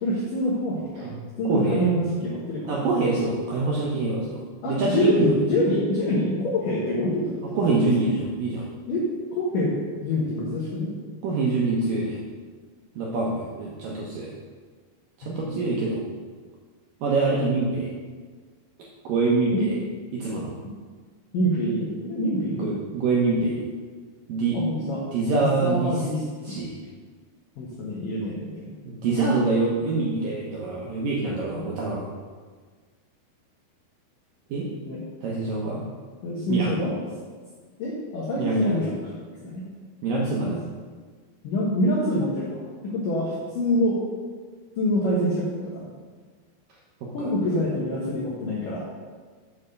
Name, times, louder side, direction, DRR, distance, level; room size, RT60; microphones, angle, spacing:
voice 1, 0.0-1.1 1.4-2.8 4.6-7.6 8.9-9.1 9.3-9.8 10.0-10.9 15.2-15.6 19.5-19.7 21.3-22.7 24.5-26.6 27.6-28.7 31.5-31.7 34.8-35.0 36.2-36.9 37.8-39.0 39.4-39.7 40.4-40.6 41.4-44.0 44.8-45.9 47.1-48.8, equal, 65° left, -5 dB, 2.3 m, -26 dB
voice 2, 1.5-1.9 2.7-4.4 4.7-5.3 7.6-8.7 11.2-12.2 13.0-14.3 15.2-16.0 17.0-17.9 19.0-19.8 20.1-20.5 22.5-23.7 24.3-24.6 25.1-26.0 26.4-26.7 28.9-32.1 34.5-34.7 35.2-35.8 36.5-36.8 38.4-38.8 40.0-40.6 47.0-47.3, right 3 dB, 75° right, -4 dB, 2.1 m, -25 dB
7.7 x 5.8 x 6.5 m, 1.5 s
omnidirectional pair, 5.2 m